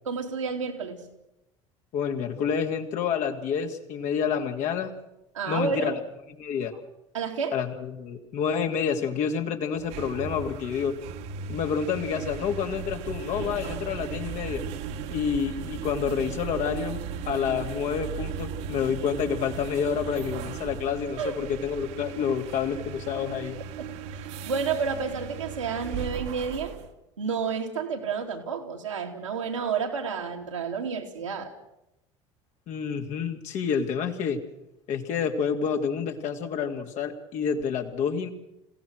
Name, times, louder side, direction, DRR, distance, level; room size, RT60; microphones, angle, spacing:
voice 1, 0.0-1.0 5.3-6.0 7.1-7.5 21.2-21.3 23.8-26.8 27.2-31.5, right 5 dB, 80° right, 1 dB, 3.0 m, -30 dB
voice 2, 1.9-4.9 5.5-5.9 6.4-6.7 7.5-10.9 11.5-14.6 15.1-17.0 17.2-23.6 32.7-34.4 34.9-38.3, left 7 dB, 50° left, 4 dB, 2.6 m, -28 dB
sound 1, 9.7-26.9, right 7 dB, 60° right, 2.0 m, -37 dB
28.0 x 17.0 x 6.4 m, 0.89 s
figure-of-eight pair, 65°, 16 cm